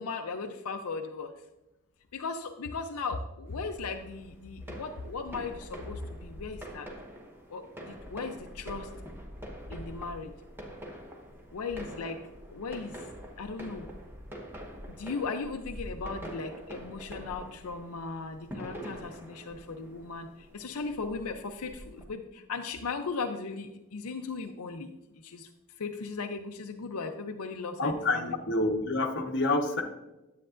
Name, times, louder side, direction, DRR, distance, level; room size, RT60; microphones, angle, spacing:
voice 1, 0.0-1.3 2.1-6.9 7.5-8.9 9.7-10.3 11.5-12.2 12.5-13.1 13.4-13.9 14.9-24.9 25.2-25.5 25.8-28.2, left 4 dB, 85° left, 5 dB, 0.6 m, -37 dB
sound 1, 3.5-22.1, equal, 10° right, 1.1 m, -45 dB
voice 2, 27.8-29.8, left 2 dB, 55° left, 2 dB, 1.0 m, -28 dB
10.0 x 8.4 x 2.5 m, 0.99 s
head